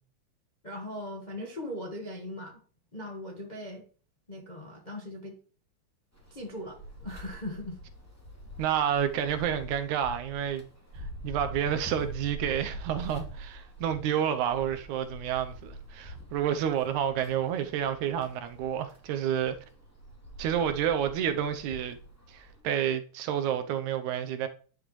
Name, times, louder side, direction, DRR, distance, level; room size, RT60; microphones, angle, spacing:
voice 1, 0.6-2.6 2.9-3.8 4.3-5.3 6.3-7.8 8.6-8.7, left 1 dB, 30° left, 0.8 m, -39 dB
sound 1, 6.1-22.6, equal, 5° left, 2.3 m, -45 dB
voice 2, 8.6-10.6 11.0-19.6 20.4-22.0 22.3-24.5, right 9 dB, 75° right, 2.1 m, -29 dB
10.0 x 7.0 x 3.2 m
omnidirectional pair, 3.5 m